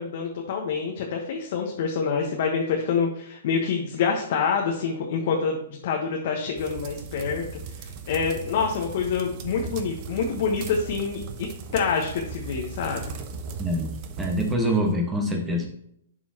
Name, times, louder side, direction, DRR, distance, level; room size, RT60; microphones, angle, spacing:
voice 1, 0.0-5.6 5.8-7.4 7.7-13.1, left 5 dB, 55° left, 0 dB, 1.2 m, -27 dB
sound 1, 6.6-14.6, right 5 dB, 40° right, 0.9 m, -37 dB
voice 2, 13.6-13.9 14.2-15.7, equal, 15° right, 2 dB, 1.4 m, -25 dB
11.0 x 4.4 x 2.9 m, 0.74 s
hypercardioid pair, 125°, 0 cm